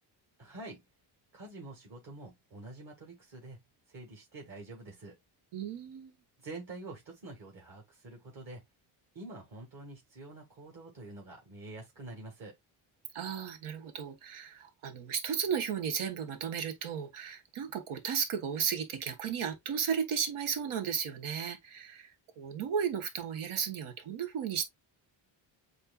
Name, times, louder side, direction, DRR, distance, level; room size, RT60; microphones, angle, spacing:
voice 1, 0.4-0.8 1.3-3.6 3.9-5.2 6.4-8.6 9.1-12.5, right 2 dB, 45° right, 1.9 m, -47 dB
voice 2, 5.5-6.2 13.1-24.6, right 7 dB, 75° right, 1.4 m, -34 dB
7.6 x 2.8 x 2.4 m
cardioid pair, 120°, 49 cm